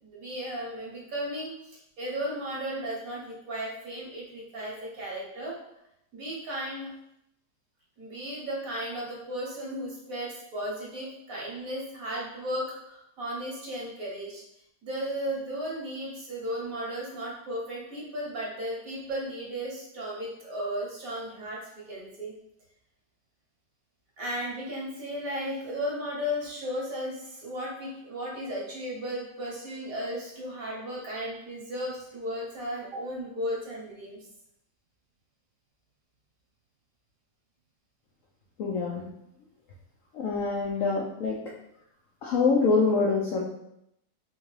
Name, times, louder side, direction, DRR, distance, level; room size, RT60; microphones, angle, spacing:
voice 1, 0.0-5.6 6.1-6.9 8.0-14.4 14.8-21.6 21.9-22.3 24.2-34.2, equal, 55° right, -4 dB, 1.2 m, -35 dB
voice 2, 38.6-39.1 40.1-41.4 42.2-43.4, left 4 dB, 90° left, -4 dB, 0.7 m, -25 dB
3.6 x 2.6 x 3.2 m, 0.80 s
omnidirectional pair, 2.0 m